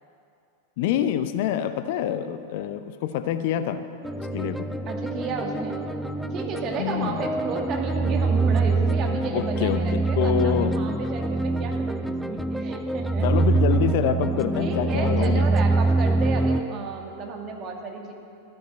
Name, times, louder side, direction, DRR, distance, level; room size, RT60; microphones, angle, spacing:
voice 1, 0.8-3.8 4.2-4.7 6.8-7.3 9.3-10.7 13.2-15.5, left 10 dB, 50° left, 11 dB, 0.6 m, -26 dB
sound 1, 4.0-16.6, right 3 dB, ahead, 0.6 m, -24 dB
voice 2, 4.9-5.8 6.3-13.5 14.6-18.1, right 4 dB, 35° right, 1 dB, 2.1 m, -33 dB
13.5 x 12.5 x 7.5 m, 2.5 s
figure-of-eight pair, 90°, 0 cm